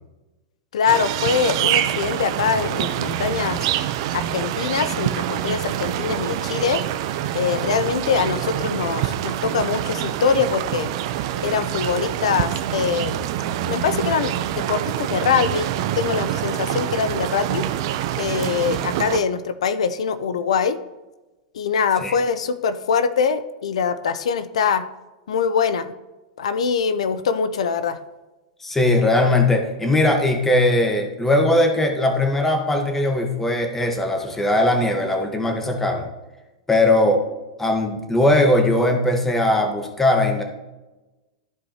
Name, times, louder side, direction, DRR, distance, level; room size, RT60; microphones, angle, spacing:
voice 1, 0.7-3.6 4.1-6.8 7.3-10.9 11.4-13.2 13.7-17.6 18.2-20.8 21.5-24.8 25.3-25.9 26.4-28.0, left 6 dB, 85° left, 12 dB, 0.5 m, -23 dB
sound 1, 0.9-19.2, right 12 dB, 55° right, 0.6 m, -25 dB
voice 2, 28.6-36.1 36.7-37.2 37.6-40.4, left 1 dB, 10° left, 3 dB, 1.2 m, -19 dB
14.0 x 4.7 x 2.9 m, 1.1 s
supercardioid pair, 140°, 3 cm